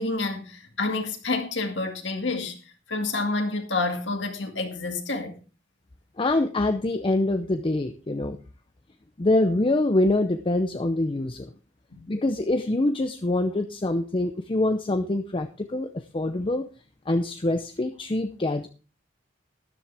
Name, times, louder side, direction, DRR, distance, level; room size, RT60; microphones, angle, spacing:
voice 1, 0.0-2.6 2.9-5.3 11.9-12.1, left 3 dB, 70° left, 2.1 m, -28 dB
voice 2, 6.2-8.4 9.2-11.5 12.1-16.7 17.1-18.7, left 2 dB, 30° left, 0.6 m, -25 dB
12.5 x 10.5 x 3.4 m
head